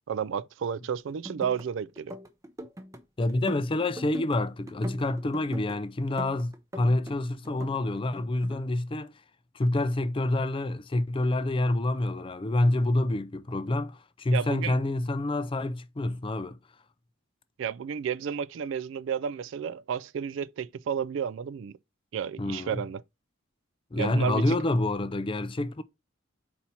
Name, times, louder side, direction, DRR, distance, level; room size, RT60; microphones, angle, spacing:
voice 1, 0.1-2.2 14.3-14.8 17.6-21.8 22.1-23.0 23.9-24.6, right 7 dB, 60° right, 0.3 m, -32 dB
sound 1, 1.1-1.7 2.0-3.0 3.3-4.4 4.7-5.8 6.2-7.2 7.4-8.6, equal, 15° right, 0.6 m, -41 dB
voice 2, 3.2-9.1 9.5-16.6 22.4-22.8 23.9-25.8, left 2 dB, 25° left, 0.4 m, -27 dB
4.3 x 4.2 x 5.5 m
head